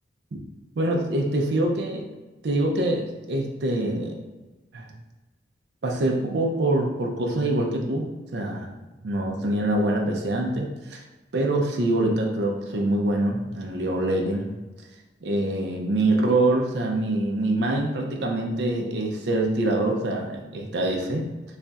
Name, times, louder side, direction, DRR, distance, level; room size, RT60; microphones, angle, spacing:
voice 1, 0.8-2.1 2.4-4.2 4.7-4.9 5.8-8.1 8.3-8.7 9.0-11.0 11.3-14.5 15.2-21.3, right 1 dB, 65° right, 1 dB, 0.5 m, -25 dB
3.2 x 2.3 x 3.9 m, 1.2 s
head